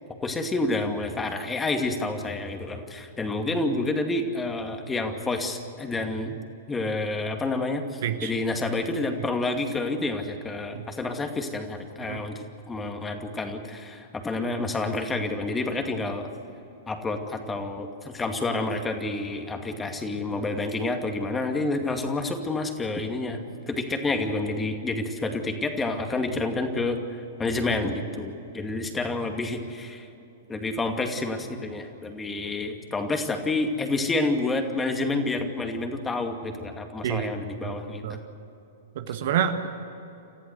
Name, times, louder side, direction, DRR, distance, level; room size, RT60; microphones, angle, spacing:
voice 1, 0.1-6.3 6.7-16.3 16.9-23.4 23.7-30.1 30.5-38.2, left 2 dB, 15° left, 5 dB, 2.4 m, -29 dB
voice 2, 38.9-39.7, right 9 dB, 60° right, 7 dB, 1.6 m, -27 dB
29.5 x 14.5 x 8.2 m, 2.9 s
figure-of-eight pair, 105°, 0 cm